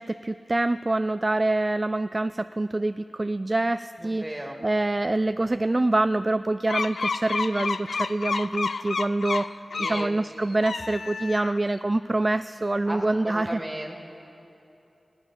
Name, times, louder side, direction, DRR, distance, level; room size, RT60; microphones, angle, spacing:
voice 1, 0.0-9.5 9.8-13.6, right 2 dB, 35° right, 12 dB, 0.3 m, -26 dB
voice 2, 4.0-4.6 9.7-10.1 12.9-13.0 13.3-13.9, right 1 dB, 15° right, 1 dB, 2.2 m, -35 dB
sound 1, 6.7-10.1 10.5-11.7, left 4 dB, 80° left, 0.3 m, -30 dB
16.5 x 7.0 x 10.0 m, 2.9 s
cardioid pair, 45°, 0 cm